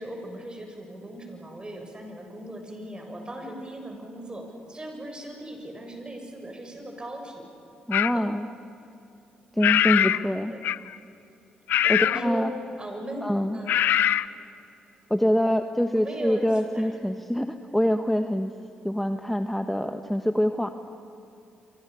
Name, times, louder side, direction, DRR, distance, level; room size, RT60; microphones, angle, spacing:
voice 1, 0.0-7.4 8.1-8.3 10.5-10.6 11.8-12.5 12.8-13.3 13.5-13.8 15.9-16.4 16.7-16.9, right 1 dB, 25° right, 3 dB, 7.5 m, -38 dB
sound 1, 7.9-8.2 9.6-10.3 10.6-11.0 11.7-12.3 13.7-14.3, left 11 dB, 70° left, 0.5 m, -22 dB
voice 2, 7.9-8.5 9.5-10.5 11.9-12.5 13.2-13.6 15.1-18.5 18.8-20.7, equal, 5° left, 8 dB, 1.3 m, -25 dB
29.0 x 25.5 x 7.0 m, 2.7 s
hypercardioid pair, 50°, 4 cm